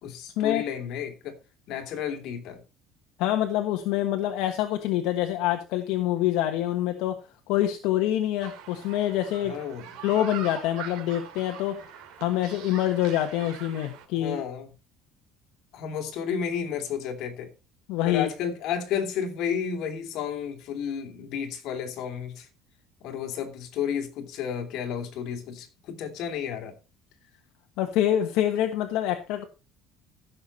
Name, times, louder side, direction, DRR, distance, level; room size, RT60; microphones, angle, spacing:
voice 1, 0.0-1.3 1.7-2.6 9.4-9.8 14.1-14.7 15.7-17.5 18.0-22.5 23.0-26.7, left 8 dB, 60° left, 3.0 m, -32 dB
voice 2, 3.2-7.2 7.5-9.5 10.0-11.8 12.2-14.4 17.9-18.3 27.8-29.4, left 12 dB, 75° left, 1.3 m, -26 dB
sound 1, 8.4-14.1, right 9 dB, 70° right, 3.2 m, -43 dB
15.5 x 6.8 x 4.2 m
cardioid pair, 150°, 0 cm